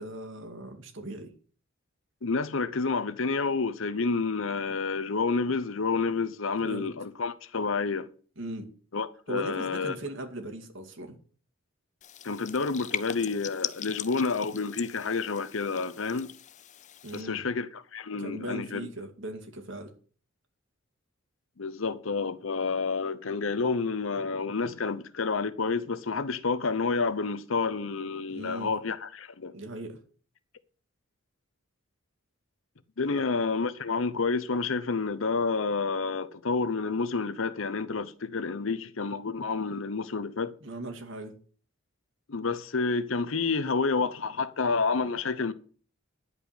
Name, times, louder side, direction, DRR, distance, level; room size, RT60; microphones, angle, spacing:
voice 1, 0.0-1.3 6.6-6.9 8.4-8.7 9.3-11.2 17.0-17.5 18.2-19.9 28.3-28.7 29.5-30.0 40.6-41.3, right 1 dB, 65° right, 2.3 m, -38 dB
voice 2, 2.2-8.1 8.9-9.9 12.2-16.3 17.1-18.8 21.6-29.5 33.0-40.5 42.3-45.5, left 4 dB, 70° left, 0.8 m, -29 dB
sound 1, 12.0-17.2, left 10 dB, 35° left, 0.5 m, -40 dB
11.0 x 5.2 x 8.3 m
head